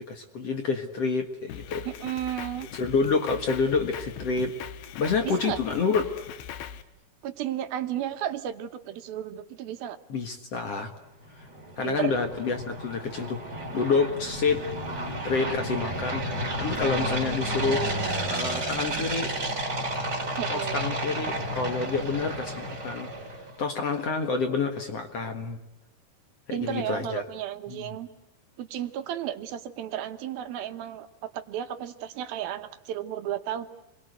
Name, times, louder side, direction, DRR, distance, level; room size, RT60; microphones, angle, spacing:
voice 1, 0.1-1.9 2.7-4.5 5.0-6.0 10.1-10.9 11.4-11.5 11.8-16.2 16.6-19.3 20.5-23.1 23.6-25.6 26.5-27.2 27.7-27.9, left 4 dB, 50° left, 5 dB, 2.2 m, -28 dB
Drum kit, 1.5-6.8, left 9 dB, 85° left, 3.2 m, -40 dB
voice 2, 1.9-2.7 5.2-5.6 7.2-10.0 11.8-12.1 20.4-20.8 26.5-28.1 28.6-33.7, right 11 dB, 75° right, 9 dB, 2.8 m, -33 dB
sound 1, 11.2-23.5, right 1 dB, 25° right, 4.5 m, -32 dB
29.0 x 22.5 x 8.1 m, 0.92 s
omnidirectional pair, 4.5 m